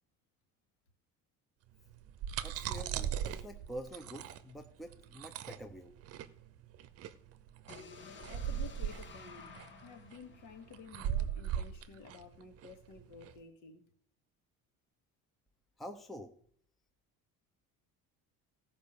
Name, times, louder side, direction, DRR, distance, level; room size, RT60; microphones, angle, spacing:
sound 1, 1.9-13.3, right 10 dB, 45° right, 0.8 m, -39 dB
voice 1, 2.4-5.9 15.8-16.3, equal, ahead, 0.6 m, -47 dB
sound 2, 7.7-11.6, left 5 dB, 35° left, 1.6 m, -53 dB
voice 2, 8.3-9.6 9.8-13.8, left 5 dB, 60° left, 2.3 m, -52 dB
15.5 x 5.4 x 6.9 m
cardioid pair, 170°, 33 cm